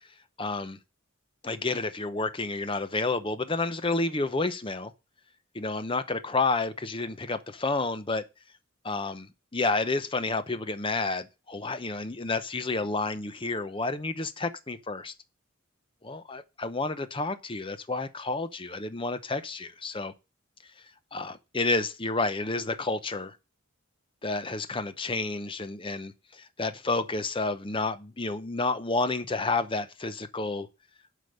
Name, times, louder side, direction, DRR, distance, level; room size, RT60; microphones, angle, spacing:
voice 1, 0.4-0.8 1.4-4.9 5.5-8.2 8.8-15.1 16.0-20.1 21.1-23.4 24.2-30.7, left 3 dB, 25° left, 0.7 m, -30 dB
8.0 x 5.1 x 6.5 m
head